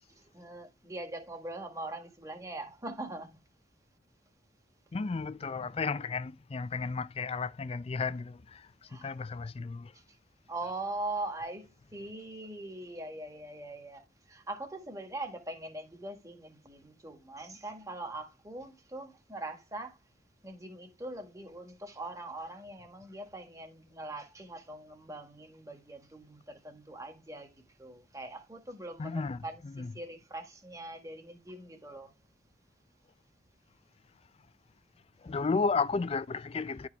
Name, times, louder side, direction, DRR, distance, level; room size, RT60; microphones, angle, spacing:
voice 1, 0.3-3.4 8.9-9.1 9.9-10.0 10.5-20.0 20.4-32.1, right 2 dB, 20° right, 1.8 m, -42 dB
voice 2, 4.9-9.9 29.0-29.9 35.2-36.9, left 4 dB, 30° left, 0.4 m, -33 dB
11.5 x 4.7 x 3.4 m
head